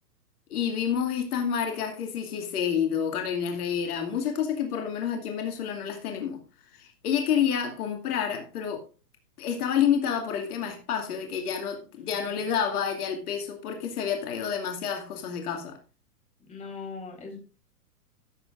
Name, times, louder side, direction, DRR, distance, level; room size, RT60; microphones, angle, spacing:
voice 1, 0.5-6.4 6.7-8.8 9.4-15.8, left 8 dB, 65° left, 2.5 m, -29 dB
voice 2, 11.9-12.4 16.4-17.4, left 4 dB, 15° left, 4.4 m, -41 dB
15.5 x 8.0 x 2.6 m
hypercardioid pair, 130°, 49 cm